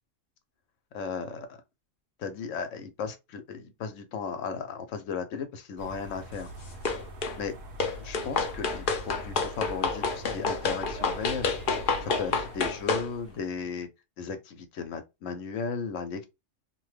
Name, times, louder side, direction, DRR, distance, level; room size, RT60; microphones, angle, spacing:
voice 1, 0.9-1.6 2.2-6.5 7.4-7.5 8.0-11.5 12.0-13.9 14.2-16.3, left 5 dB, 90° left, 1.0 m, -35 dB
sound 1, 5.8-13.8, equal, 85° right, 1.2 m, -43 dB
sound 2, 6.8-7.4 7.8-13.1, left 4 dB, 55° left, 0.7 m, -29 dB
2.8 x 2.2 x 3.2 m
omnidirectional pair, 1.3 m